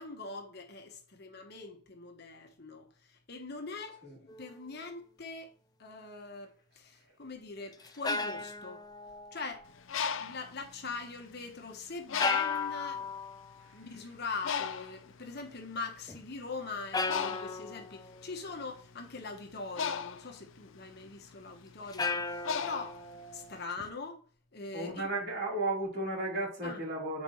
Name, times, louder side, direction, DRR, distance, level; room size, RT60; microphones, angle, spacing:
voice 1, 0.0-5.5 5.8-8.8 9.3-9.7 10.2-13.0 13.7-23.0 23.3-24.2 24.5-25.1 26.6-26.8, left 4 dB, 50° left, 1.3 m, -42 dB
sound 1, 4.3-4.6 7.7-9.7 12.2-13.5 16.1-16.2 16.9-18.6 21.9-23.9, left 4 dB, 20° left, 0.5 m, -36 dB
Bird, 9.7-11.5 12.1-12.8 13.4-13.6 13.8-23.6, left 7 dB, 70° left, 0.5 m, -37 dB
voice 2, 24.7-27.2, right 2 dB, 50° right, 3.8 m, -34 dB
8.5 x 5.2 x 3.2 m
head